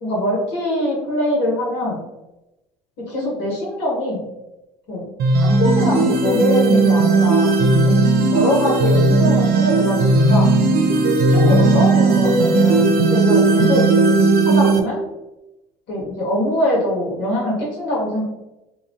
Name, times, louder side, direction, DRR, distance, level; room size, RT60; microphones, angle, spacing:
voice 1, 0.0-2.0 3.0-4.3 4.9-5.1 5.4-7.5 7.8-7.9 8.3-10.5 11.3-13.9 14.4-15.0 15.9-18.2, left 1 dB, 65° left, -4 dB, 1.1 m, -23 dB
sound 1, 5.2-14.8, right 3 dB, 50° right, 0.5 m, -16 dB
2.8 x 2.3 x 2.5 m, 0.96 s
hypercardioid pair, 65°, 20 cm